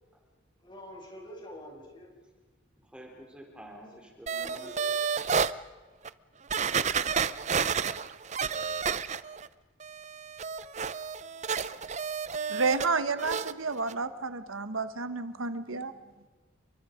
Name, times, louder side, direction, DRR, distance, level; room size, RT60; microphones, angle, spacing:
voice 1, 0.6-2.1 4.4-4.9, equal, 25° left, 0 dB, 7.1 m, -46 dB
voice 2, 2.8-4.7 9.2-9.3 11.7-11.9, equal, 5° right, 2 dB, 3.3 m, -49 dB
sound 1, 4.3-5.5 6.0-6.1 6.5-9.5 9.8-12.9 13.2-13.5 13.9-14.0, right 6 dB, 35° right, 0.6 m, -31 dB
voice 3, 12.5-15.9, right 4 dB, 90° right, 11 dB, 1.3 m, -30 dB
30.0 x 23.5 x 5.2 m, 1.3 s
head